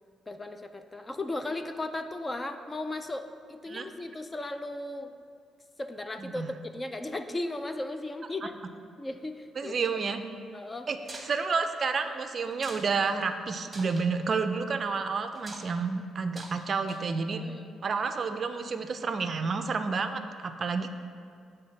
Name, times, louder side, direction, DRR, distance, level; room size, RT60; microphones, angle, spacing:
voice 1, 0.3-5.1 5.8-8.6 9.0-9.8 10.5-10.9 17.4-17.8, left 2 dB, 20° left, 8 dB, 0.4 m, -36 dB
voice 2, 9.6-10.2 10.9-11.0 11.2-17.4 17.8-20.9, right 4 dB, 45° right, 8 dB, 0.4 m, -30 dB
sound 1, 11.0-11.3 12.5-12.9 13.2-13.3 13.7-14.1 15.3-15.7 16.3-16.6 16.9-17.2, right 2 dB, 20° right, 1.0 m, -44 dB
9.4 x 3.3 x 5.7 m, 2.2 s
cardioid pair, 105°, 0 cm